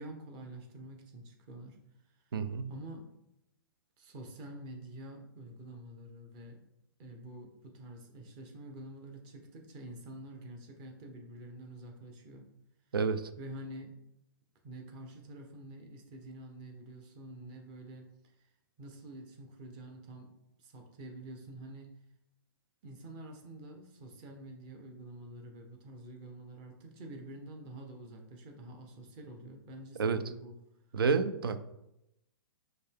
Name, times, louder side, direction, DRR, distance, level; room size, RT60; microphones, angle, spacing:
voice 1, 0.0-1.8 2.7-3.0 4.0-6.6 7.0-12.5 13.4-13.9 14.6-18.1 18.4-18.5 18.8-20.3 20.6-21.9 22.8-30.5, right 1 dB, 35° right, 2 dB, 0.9 m, -47 dB
voice 2, 2.3-2.7 12.9-13.3 30.0-30.2 30.9-31.6, right 5 dB, 80° right, 12 dB, 0.4 m, -29 dB
5.2 x 2.3 x 3.5 m, 0.86 s
hypercardioid pair, 125°, 12 cm